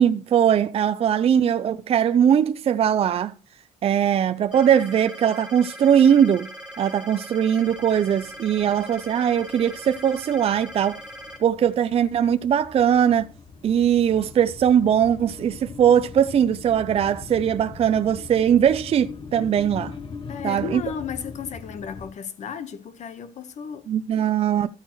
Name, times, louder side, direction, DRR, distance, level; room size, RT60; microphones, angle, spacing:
voice 1, 0.0-3.3 3.8-6.5 6.8-11.0 11.4-13.3 13.6-19.9 20.4-20.8 23.9-24.7, right 9 dB, 45° right, 0.5 m, -20 dB
sound 1, 4.5-11.4, equal, 5° right, 3.5 m, -40 dB
sound 2, 7.7-22.1, left 5 dB, 35° left, 0.9 m, -41 dB
voice 2, 20.3-23.9, left 7 dB, 55° left, 1.2 m, -34 dB
13.5 x 8.7 x 3.1 m
cardioid pair, 110°, 15 cm